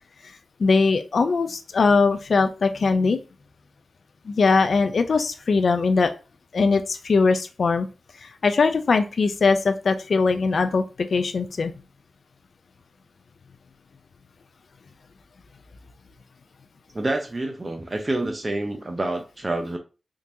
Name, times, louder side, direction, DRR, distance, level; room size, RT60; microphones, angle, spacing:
voice 1, 0.6-3.2 4.3-6.1 6.5-7.9 8.2-11.7, left 4 dB, 70° left, 8 dB, 0.3 m, -21 dB
voice 2, 16.9-19.8, right 2 dB, 35° right, 3 dB, 0.6 m, -27 dB
3.6 x 2.8 x 2.5 m, 0.31 s
cardioid pair, 60°, 0 cm